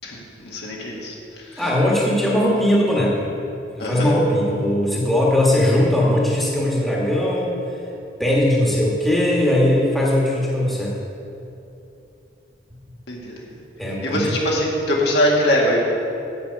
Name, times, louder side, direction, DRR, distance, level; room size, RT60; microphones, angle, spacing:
voice 1, 0.4-1.1 1.5-1.6 3.8-4.1 13.1-13.3 14.0-15.8, equal, 65° left, -3 dB, 2.0 m, -21 dB
voice 2, 1.6-3.3 3.7-7.6 8.2-11.0 13.8-14.3, left 1 dB, ahead, -5 dB, 1.5 m, -19 dB
8.4 x 6.0 x 8.1 m, 2.8 s
head